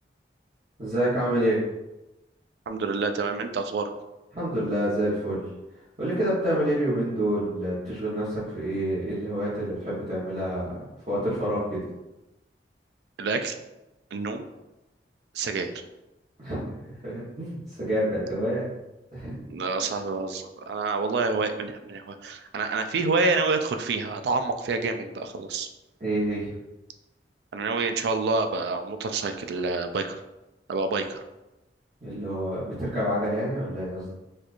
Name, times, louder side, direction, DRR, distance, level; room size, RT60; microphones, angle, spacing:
voice 1, 0.8-1.6 4.3-5.5 6.0-10.7 11.1-11.8 16.4-16.6 17.0-18.7 19.1-19.4 26.0-26.5 32.0-34.1, right 1 dB, 40° right, -11 dB, 1.0 m, -27 dB
voice 2, 2.7-3.9 13.2-13.6 14.1-14.4 15.3-15.7 19.5-25.7 27.5-30.2 30.7-31.2, right 3 dB, 65° right, 6 dB, 0.3 m, -27 dB
4.3 x 2.3 x 2.5 m, 1.0 s
head